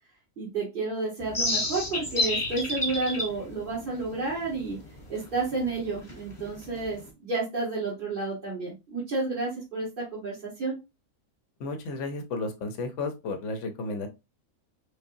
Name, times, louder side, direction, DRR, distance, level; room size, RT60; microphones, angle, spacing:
voice 1, 0.4-4.8 5.1-10.8, right 3 dB, 40° right, -8 dB, 1.6 m, -31 dB
sound 1, 1.2-7.1, left 2 dB, 25° left, 0.9 m, -32 dB
voice 2, 11.6-14.1, left 3 dB, 65° left, 7 dB, 1.0 m, -33 dB
5.2 x 2.1 x 2.6 m, 0.25 s
omnidirectional pair, 1.4 m